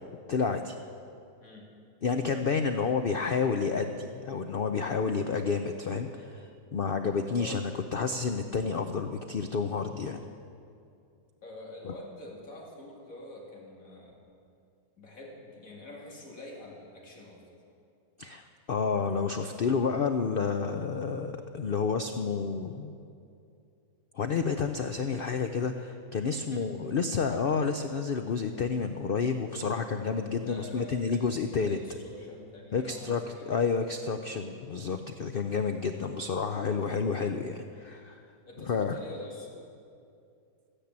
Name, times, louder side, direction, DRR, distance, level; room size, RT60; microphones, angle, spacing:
voice 1, 0.3-0.8 2.0-10.2 11.8-11.9 18.2-23.0 24.1-31.8 32.7-33.2 33.5-38.2 38.7-39.0, left 5 dB, 85° left, 7 dB, 0.4 m, -30 dB
voice 2, 11.4-14.2 15.0-17.6 26.5-27.1 30.4-33.5 35.9-36.2 38.5-39.5, left 2 dB, 55° left, -2 dB, 2.7 m, -46 dB
13.5 x 10.0 x 8.7 m, 2.5 s
omnidirectional pair, 1.7 m